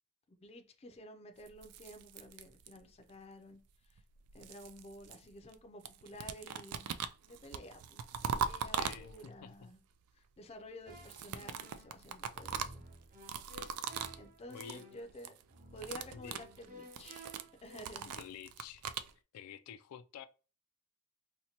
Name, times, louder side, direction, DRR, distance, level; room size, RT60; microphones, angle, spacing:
voice 1, 0.3-3.6 3.9-4.0 4.3-6.9 7.2-9.8 10.2-12.8 14.1-15.3 15.7-17.3 17.6-18.1, left 1 dB, 30° left, 0.4 m, -52 dB
sound 1, 1.5-3.0 4.0-5.6 5.8-9.5 10.9-14.2 14.5-14.8 15.1-15.4 15.7-19.1, right 7 dB, 85° right, 0.3 m, -41 dB
voice 2, 8.7-9.7 14.5-14.9 16.1-16.5 18.0-18.8 19.3-20.3, left 8 dB, 90° left, 0.3 m, -50 dB
sound 2, 10.9-17.9, right 1 dB, 40° right, 0.8 m, -54 dB
4.2 x 2.1 x 2.8 m
head